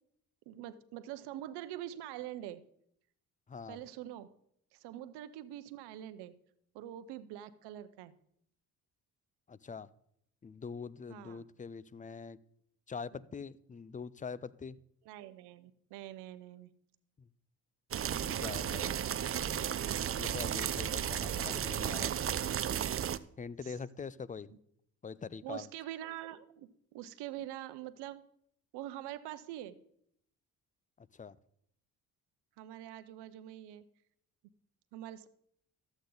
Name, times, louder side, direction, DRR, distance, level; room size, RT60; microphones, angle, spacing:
voice 1, 0.5-2.6 3.7-4.3 4.7-6.3 6.7-8.1 11.1-11.4 13.1-13.2 15.1-16.7 18.7-19.1 21.3-21.5 23.6-23.7 25.4-28.2 28.7-29.8 32.6-33.8 34.9-35.3, right 12 dB, 85° right, 14 dB, 0.8 m, -45 dB
voice 2, 3.5-3.8 9.5-9.9 10.4-12.4 12.9-14.8 17.2-17.3 18.2-19.0 20.2-22.1 23.4-24.5 25.0-25.7 31.0-31.4, left 5 dB, 20° left, 20 dB, 0.5 m, -43 dB
sound 1, 17.9-23.2, right 9 dB, 35° right, 0.5 m, -34 dB
13.0 x 8.2 x 3.9 m, 0.70 s
supercardioid pair, 65°, 39 cm